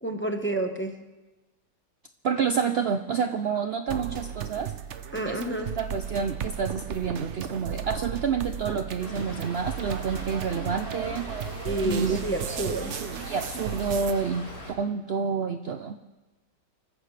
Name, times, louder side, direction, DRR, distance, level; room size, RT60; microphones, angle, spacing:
voice 1, 0.0-1.0 5.1-5.8 11.6-12.9, right 1 dB, 10° left, 4 dB, 0.8 m, -29 dB
voice 2, 2.2-4.7 5.3-11.3 11.8-12.2 12.5-16.0, right 6 dB, 80° right, 7 dB, 0.5 m, -29 dB
sound 1, 3.9-14.1, right 8 dB, 55° right, 0.8 m, -35 dB
Stream / Trickle dribble, 9.0-14.7, equal, 55° left, 4.6 m, -40 dB
26.5 x 14.5 x 3.3 m, 1.1 s
omnidirectional pair, 1.8 m